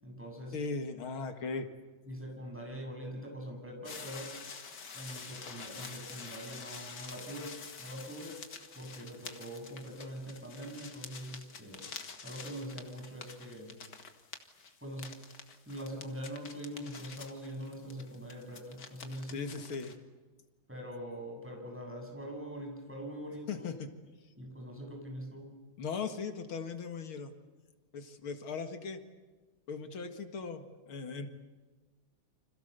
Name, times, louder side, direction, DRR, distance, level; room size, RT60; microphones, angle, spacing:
voice 1, 0.0-0.6 2.1-4.3 4.9-7.5 7.8-8.3 8.7-11.9 12.2-13.7 14.8-15.1 15.7-19.6 20.7-23.7 24.4-25.5, equal, 5° right, 0 dB, 7.8 m, -43 dB
voice 2, 0.5-1.7 19.3-19.9 23.5-23.9 25.8-27.3 27.9-29.0 29.7-31.3, left 4 dB, 85° left, 7 dB, 2.8 m, -38 dB
sound 1, 3.8-20.0, left 5 dB, 55° left, 2.5 m, -48 dB
30.0 x 26.5 x 6.9 m, 1.3 s
omnidirectional pair, 2.2 m